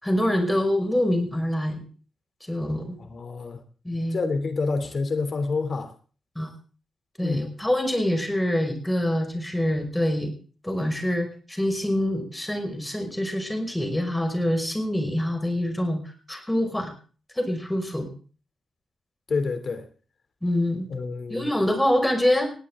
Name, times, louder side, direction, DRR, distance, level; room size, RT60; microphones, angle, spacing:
voice 1, 0.0-1.8 2.5-3.0 3.8-4.2 6.4-6.5 7.2-10.3 10.6-16.0 16.3-16.9 17.4-18.1 20.4-20.9 21.3-22.5, left 1 dB, 5° left, 5.5 m, -25 dB
voice 2, 3.0-3.6 4.1-5.9 7.2-7.5 19.3-19.8 20.9-21.5, left 4 dB, 45° left, 3.0 m, -28 dB
19.5 x 17.5 x 3.7 m
wide cardioid pair, 125°, 0 cm